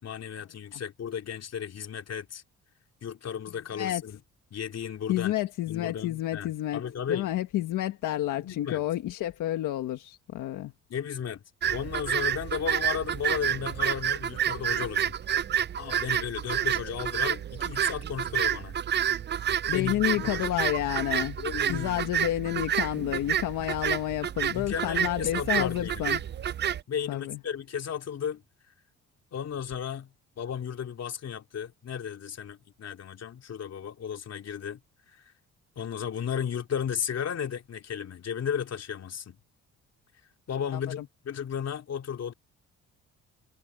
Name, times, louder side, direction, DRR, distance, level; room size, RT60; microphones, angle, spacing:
voice 1, 0.0-2.4 3.0-4.2 4.5-5.3 5.7-7.3 8.4-8.8 10.9-11.4 11.7-15.2 15.8-18.8 19.7-20.5 21.4-22.4 24.5-26.2 26.9-28.4 29.3-34.8 35.1-35.2 35.7-39.4 40.5-42.3, left 8 dB, 55° left, 3.2 m, -34 dB
voice 2, 5.1-6.8 7.1-10.7 19.7-21.4 21.7-26.2 27.1-27.4 40.7-41.0, left 14 dB, 85° left, 1.5 m, -30 dB
sound 1, 11.6-26.8, right 9 dB, 35° right, 0.5 m, -29 dB
cardioid pair, 90°, 30 cm